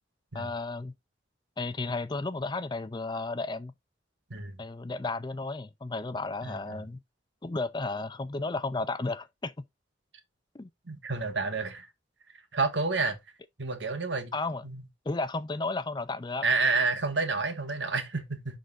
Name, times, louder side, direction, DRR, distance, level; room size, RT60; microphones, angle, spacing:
voice 1, 0.3-0.9 1.6-3.7 4.6-7.0 7.4-9.5 10.5-10.7 14.3-14.6 15.1-16.4, left 3 dB, 25° left, 0.4 m, -33 dB
voice 2, 6.4-6.8 10.9-11.9 12.5-13.2 13.6-14.3 14.6-14.8 16.4-18.6, right 3 dB, 75° right, 1.6 m, -29 dB
11.5 x 3.9 x 2.5 m
head